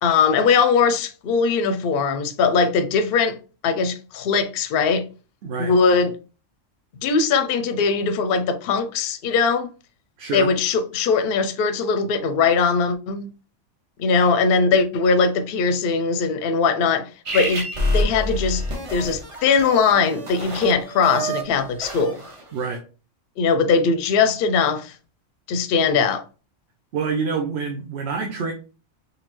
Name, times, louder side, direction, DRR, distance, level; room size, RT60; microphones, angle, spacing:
voice 1, 0.0-3.4 3.6-5.0 5.6-6.1 7.0-9.7 10.3-13.3 14.0-17.6 17.9-18.6 18.9-22.2 23.4-24.9 25.5-26.2, left 5 dB, 60° left, 0.7 m, -20 dB
voice 2, 5.4-5.7 10.2-10.5 22.5-22.8 26.9-28.5, right 5 dB, 65° right, 0.9 m, -27 dB
sound 1, 17.3-22.7, equal, 35° right, 0.6 m, -28 dB
4.1 x 3.3 x 3.0 m
omnidirectional pair, 1.3 m